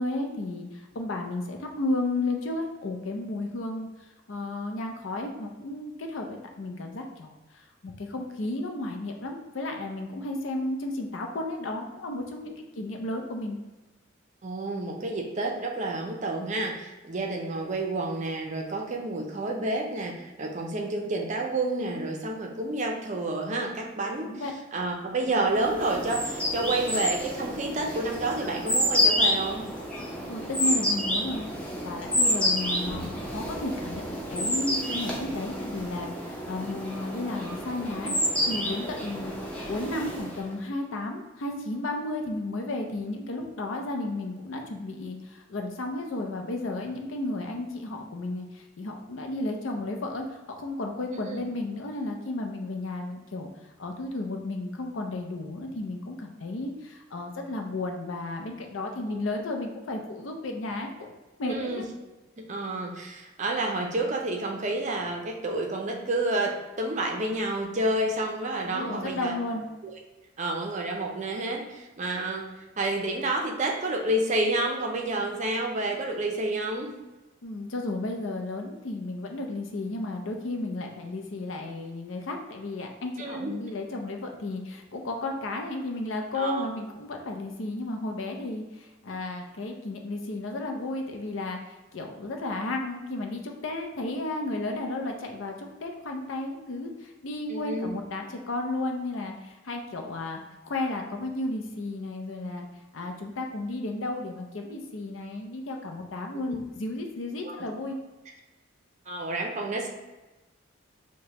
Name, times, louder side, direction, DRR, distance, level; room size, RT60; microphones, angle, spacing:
voice 1, 0.0-3.9 4.3-13.6 24.2-24.5 30.3-38.2 38.4-39.3 39.7-53.5 53.8-61.1 61.4-61.8 68.6-69.7 77.4-91.6 91.9-100.4 100.7-102.7 102.9-108.0, left 2 dB, 70° left, 3 dB, 0.5 m, -33 dB
voice 2, 14.4-24.4 24.7-29.7 51.1-51.4 59.1-59.2 61.5-61.8 62.4-69.3 69.8-69.9 70.4-72.5 72.8-76.9 83.2-83.6 86.3-86.7 97.5-97.9 106.3-106.6 107.4-107.6 109.1-109.9, right 2 dB, 35° right, 1 dB, 0.5 m, -29 dB
sound 1, 25.6-40.5, left 1 dB, 5° left, 0.6 m, -29 dB
5.0 x 2.2 x 2.8 m, 1.1 s
head